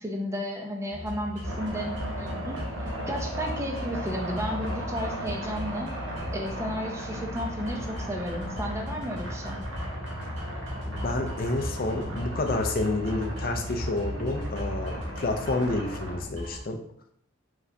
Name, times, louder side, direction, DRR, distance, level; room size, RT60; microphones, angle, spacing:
voice 1, 0.0-2.6 3.1-5.9 6.3-9.6, equal, 15° right, 1 dB, 0.6 m, -33 dB
sound 1, 0.9-16.6, left 1 dB, 60° right, 1.5 m, -37 dB
sound 2, 1.4-16.2, right 1 dB, 75° right, 1.0 m, -37 dB
voice 2, 10.9-16.8, left 2 dB, 45° left, 4 dB, 0.5 m, -29 dB
4.8 x 3.3 x 2.7 m, 0.67 s
head